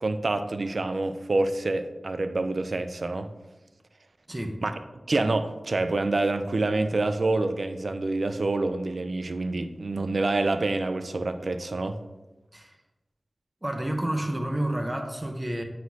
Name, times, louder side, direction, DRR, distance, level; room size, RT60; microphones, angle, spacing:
voice 1, 0.0-3.3 4.6-4.8 5.1-12.0, right 2 dB, 70° right, 9 dB, 0.4 m, -27 dB
voice 2, 13.6-15.6, right 1 dB, 25° right, 4 dB, 0.9 m, -29 dB
9.4 x 4.1 x 2.8 m, 1.1 s
cardioid pair, 40°, 0 cm